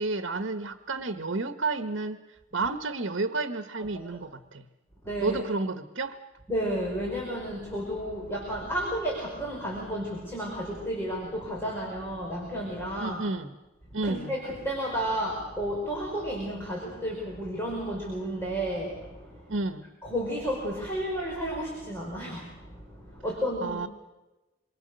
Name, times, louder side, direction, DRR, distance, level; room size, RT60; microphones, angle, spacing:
voice 1, 0.0-2.2 2.5-4.7 5.2-6.2 13.0-13.5 13.9-14.3 19.5-19.8 23.6-23.9, right 3 dB, 75° right, 9 dB, 1.2 m, -31 dB
voice 2, 5.0-5.4 6.5-13.2 14.0-19.5 20.0-23.9, equal, 10° left, -3 dB, 5.1 m, -32 dB
27.0 x 24.0 x 6.7 m, 1.1 s
head